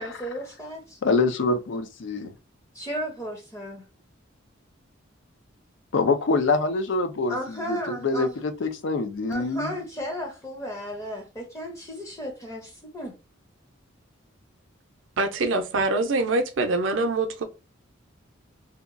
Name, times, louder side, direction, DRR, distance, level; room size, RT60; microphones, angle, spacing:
voice 1, 0.0-1.0 2.7-3.8 7.3-8.3 9.3-13.1, equal, 15° left, 0.6 m, -34 dB
voice 2, 1.0-2.3 5.9-9.8, left 3 dB, 65° left, 0.4 m, -25 dB
voice 3, 15.2-17.4, right 2 dB, 70° right, 0.5 m, -24 dB
2.8 x 2.2 x 2.4 m
head